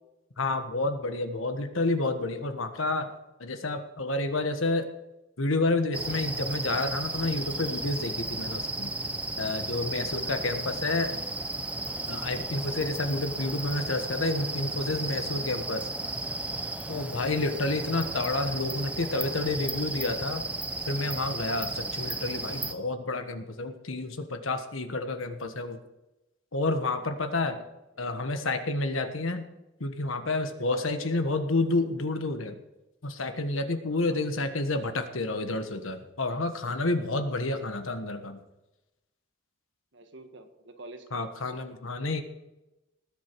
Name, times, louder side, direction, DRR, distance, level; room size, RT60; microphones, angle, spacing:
voice 1, 0.4-3.1 3.4-4.9 5.4-8.9 9.4-11.1 12.1-15.9 16.9-20.5 20.9-25.8 26.5-27.6 28.0-29.5 29.8-32.6 33.0-38.4 41.1-42.2, left 2 dB, 85° left, 8 dB, 1.4 m, -29 dB
sound 1, 5.9-22.7, right 2 dB, 5° right, 0.7 m, -34 dB
voice 2, 17.2-17.6 17.9-18.0 27.5-27.6 28.1-28.3 30.9-31.2 33.9-34.3 39.9-41.2, right 2 dB, 65° right, 6 dB, 1.6 m, -49 dB
19.5 x 8.4 x 4.7 m, 0.98 s
head